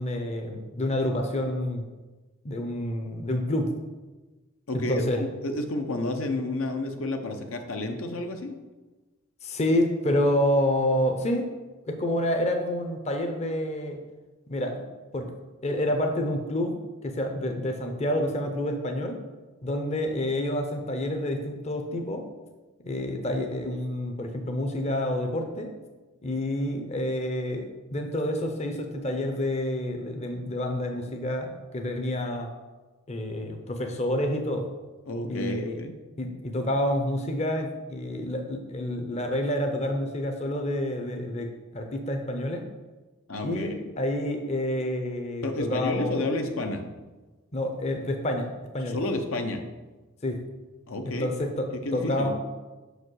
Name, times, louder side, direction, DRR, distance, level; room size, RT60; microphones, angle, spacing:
voice 1, 0.0-1.9 2.4-3.7 4.7-5.2 9.4-11.5 11.8-14.0 14.5-14.8 15.1-15.3 15.6-19.2 19.6-22.3 22.8-25.7 26.2-32.5 33.1-34.7 35.3-35.8 36.2-41.5 41.7-42.7 43.4-46.3 47.5-49.0 50.2-50.4 51.0-52.4, left 1 dB, 30° left, 4 dB, 0.7 m, -28 dB
voice 2, 4.7-8.6 35.1-35.9 43.3-43.7 45.4-46.8 48.8-49.6 50.9-51.3 51.8-52.3, left 2 dB, 70° left, 5 dB, 0.8 m, -30 dB
5.7 x 5.1 x 6.3 m, 1.2 s
head